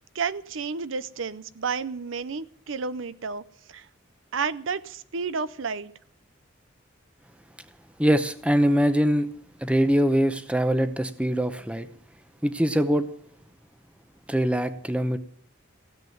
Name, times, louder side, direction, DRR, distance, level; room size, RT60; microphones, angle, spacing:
voice 1, 0.1-3.4 3.7-3.9 4.3-5.9, right 5 dB, 85° right, 15 dB, 0.6 m, -31 dB
voice 2, 8.0-9.3 9.6-11.9 12.4-13.1 14.3-15.2, equal, 5° right, 10 dB, 0.8 m, -23 dB
16.5 x 7.7 x 9.4 m, 0.62 s
head